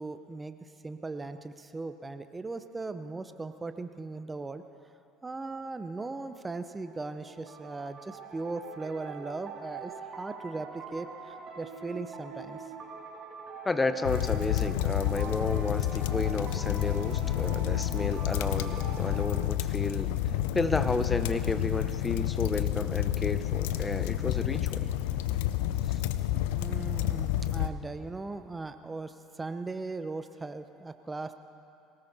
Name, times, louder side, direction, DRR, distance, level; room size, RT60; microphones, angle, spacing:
voice 1, 0.0-4.6 5.2-12.6 20.3-20.5 26.5-31.3, right 3 dB, 20° right, 10 dB, 0.6 m, -38 dB
sound 1, 6.3-19.3, right 5 dB, 45° right, 2.3 m, -44 dB
voice 2, 13.6-20.1 20.5-24.9 25.9-26.0, left 3 dB, 20° left, 11 dB, 0.8 m, -32 dB
sound 2, 14.0-27.7, left 12 dB, 70° left, 0.5 m, -29 dB
24.0 x 18.0 x 2.7 m, 2.7 s
figure-of-eight pair, 65°, 0 cm